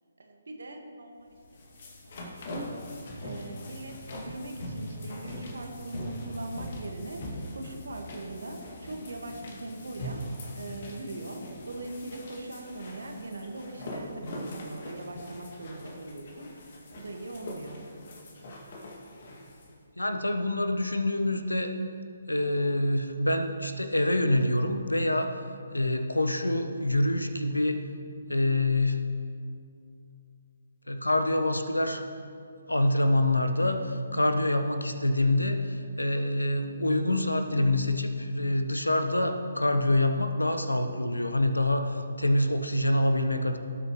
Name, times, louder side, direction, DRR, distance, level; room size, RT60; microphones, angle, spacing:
voice 1, 0.2-1.4 1.7-2.6 3.2-7.3 7.5-10.2 10.5-16.6 17.0-17.8, right 2 dB, 65° right, 3 dB, 1.6 m, -41 dB
sound 1, 1.3-19.7, left 1 dB, 45° left, 2.1 m, -41 dB
voice 2, 20.0-21.7 22.3-25.4 25.7-27.8 28.3-29.0 30.9-32.1 32.7-43.6, left 1 dB, 85° left, 7 dB, 1.0 m, -26 dB
18.0 x 8.3 x 3.1 m, 2.4 s
figure-of-eight pair, 140°, 0 cm